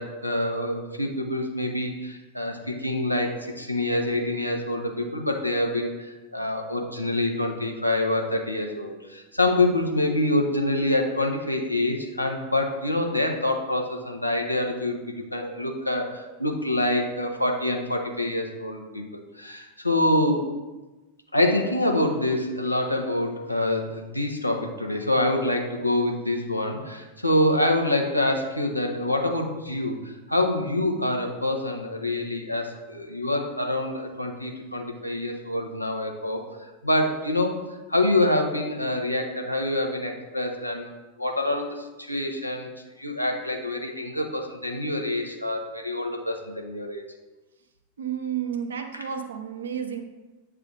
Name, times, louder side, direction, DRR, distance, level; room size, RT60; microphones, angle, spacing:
voice 1, 0.0-19.0 19.4-20.4 21.3-36.4 36.8-37.6 37.9-40.9 41.2-42.7 43.0-47.0 48.9-49.0, left 1 dB, 85° left, 2 dB, 0.8 m, -26 dB
voice 2, 48.0-50.0, right 8 dB, 65° right, 5 dB, 0.7 m, -31 dB
8.0 x 3.4 x 3.8 m, 1.1 s
figure-of-eight pair, 90°, 0 cm